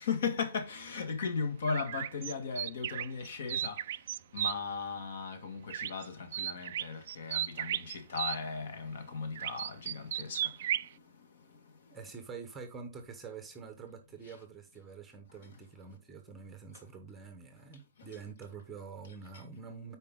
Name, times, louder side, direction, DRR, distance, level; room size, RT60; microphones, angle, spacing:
voice 1, 0.1-3.8 4.3-10.5, left 5 dB, 50° left, 1.7 m, -36 dB
sound 1, 1.6-4.5 5.7-6.1 6.3-8.4 9.4-10.9, right 11 dB, 40° right, 0.3 m, -35 dB
voice 2, 11.9-20.0, right 5 dB, 5° right, 0.9 m, -46 dB
9.3 x 4.7 x 3.7 m
hypercardioid pair, 175°, 0 cm